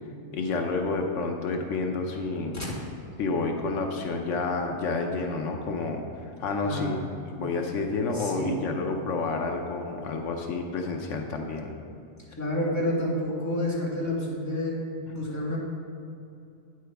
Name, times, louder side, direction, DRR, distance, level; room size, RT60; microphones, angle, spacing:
voice 1, 0.3-2.6 3.2-7.0 7.3-11.7, left 3 dB, 85° left, 3 dB, 1.1 m, -29 dB
voice 2, 6.6-7.1 8.1-8.7 12.4-14.8 15.1-15.6, left 1 dB, 15° left, -7 dB, 2.0 m, -29 dB
9.3 x 7.9 x 3.5 m, 2.7 s
omnidirectional pair, 1.3 m